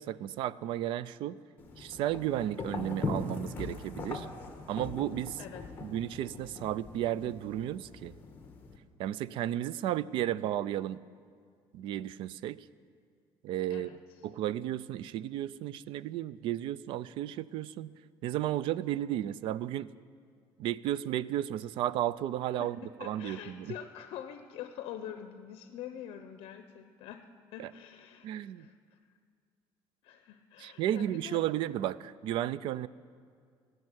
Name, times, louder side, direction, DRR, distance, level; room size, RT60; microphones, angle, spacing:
voice 1, 0.0-1.4 1.8-4.3 4.7-5.4 5.8-8.1 9.0-11.0 11.7-12.6 13.4-13.9 14.2-17.9 18.2-19.9 20.6-23.7 27.6-27.7 28.2-28.7 30.6-32.9, right 12 dB, 60° right, 19 dB, 0.4 m, -33 dB
sound 1, 1.6-8.8, left 3 dB, 20° left, 1.2 m, -41 dB
voice 2, 13.7-14.2 22.6-22.7 23.0-27.2 27.5-29.0 30.0-31.4, left 10 dB, 65° left, 7 dB, 0.7 m, -45 dB
18.0 x 6.5 x 9.7 m, 2.1 s
cardioid pair, 180°, 10 cm